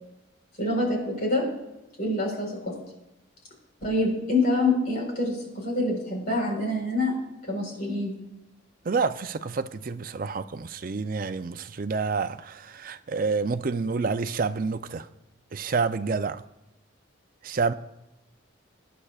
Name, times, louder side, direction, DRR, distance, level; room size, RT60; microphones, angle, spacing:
voice 1, 0.6-1.5 2.0-2.7 3.8-7.2 7.5-8.1, left 2 dB, 45° left, 4.2 m, -26 dB
voice 2, 8.9-15.1 15.5-16.4 17.4-17.7, right 4 dB, 45° right, 0.4 m, -28 dB
23.0 x 10.0 x 2.4 m
head